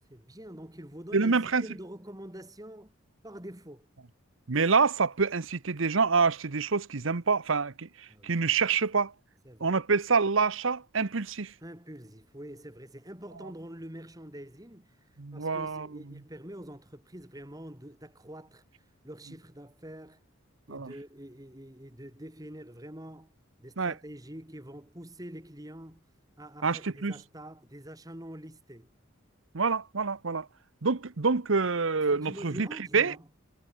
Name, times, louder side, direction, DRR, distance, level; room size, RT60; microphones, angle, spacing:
voice 1, 0.1-2.9 3.2-3.9 8.1-8.4 9.4-9.8 11.6-18.6 19.0-20.2 20.7-23.3 23.6-26.0 26.4-28.9 32.1-33.3, right 1 dB, 15° right, 2.8 m, -45 dB
voice 2, 1.1-1.7 4.5-9.1 9.6-11.5 15.2-16.2 20.7-20.9 23.8-23.9 26.6-27.1 29.5-30.5 30.8-32.7 32.9-33.1, right 4 dB, 70° right, 0.9 m, -27 dB
head